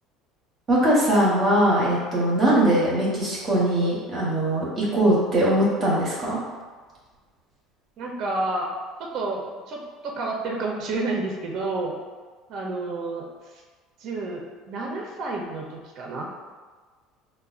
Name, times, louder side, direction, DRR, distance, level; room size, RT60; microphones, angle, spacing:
voice 1, 0.7-6.4, right 1 dB, 25° right, -6 dB, 0.8 m, -21 dB
voice 2, 8.0-8.7 9.0-11.9 12.5-13.3 14.0-16.3, right 2 dB, 45° right, 0 dB, 0.5 m, -30 dB
5.3 x 2.1 x 2.4 m, 1.4 s
cardioid pair, 165°, 0 cm